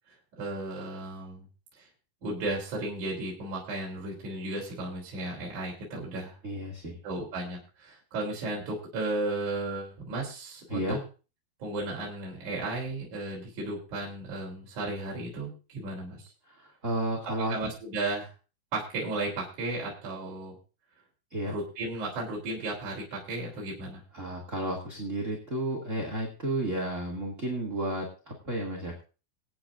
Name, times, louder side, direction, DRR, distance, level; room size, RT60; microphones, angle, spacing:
voice 1, 0.1-1.5 1.8-1.9 2.2-6.4 7.0-11.0 11.6-16.2 17.5-18.3 18.7-20.6 21.4-24.0, right 2 dB, 50° right, -3 dB, 4.8 m, -34 dB
voice 2, 6.4-7.0 10.7-11.0 16.5-17.6 21.3-21.5 24.1-29.0, right 1 dB, 25° right, 0 dB, 2.0 m, -32 dB
25.0 x 9.0 x 2.5 m, 0.34 s
omnidirectional pair, 4.4 m